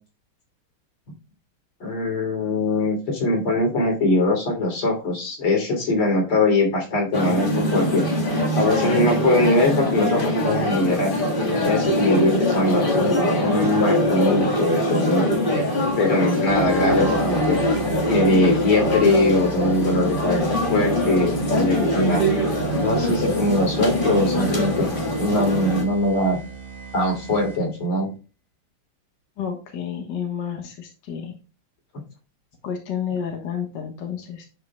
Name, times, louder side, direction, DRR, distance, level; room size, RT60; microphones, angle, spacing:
voice 1, 1.8-8.0 8.6-11.1 11.6-15.3 16.0-17.6 18.1-22.2 22.8-24.8 25.2-26.4 26.9-28.1, left 2 dB, 85° left, 1 dB, 4.0 m, -21 dB
sound 1, 7.1-25.8, left 1 dB, 25° left, 1.6 m, -23 dB
sound 2, 16.5-27.9, right 6 dB, 15° right, 1.4 m, -38 dB
voice 2, 29.4-31.3 32.6-34.5, left 8 dB, 60° left, 2 dB, 1.9 m, -30 dB
11.0 x 5.7 x 2.2 m, 0.33 s
omnidirectional pair, 2.3 m